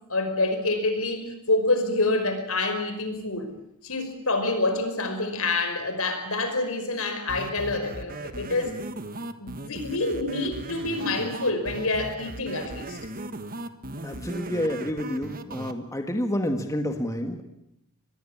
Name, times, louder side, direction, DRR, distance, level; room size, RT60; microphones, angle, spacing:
voice 1, 0.1-3.5 3.8-8.7 9.4-13.0, left 2 dB, 70° left, 7 dB, 5.4 m, -27 dB
sound 1, 7.3-15.7, right 2 dB, 40° right, 1.6 m, -37 dB
voice 2, 14.0-17.4, equal, 15° left, 5 dB, 1.8 m, -29 dB
25.0 x 21.0 x 8.7 m, 0.81 s
head